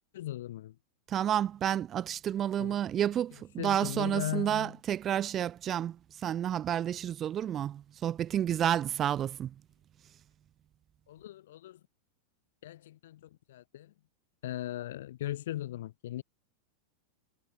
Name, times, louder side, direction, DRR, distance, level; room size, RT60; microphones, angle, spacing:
voice 1, 0.1-0.8 2.6-2.8 3.6-4.8 11.1-11.8 12.6-13.9 14.4-16.2, left 13 dB, 55° left, 6.9 m, -38 dB
voice 2, 1.1-6.0 6.2-9.5, right 10 dB, 30° right, 0.4 m, -30 dB
figure-of-eight pair, 90°, 0 cm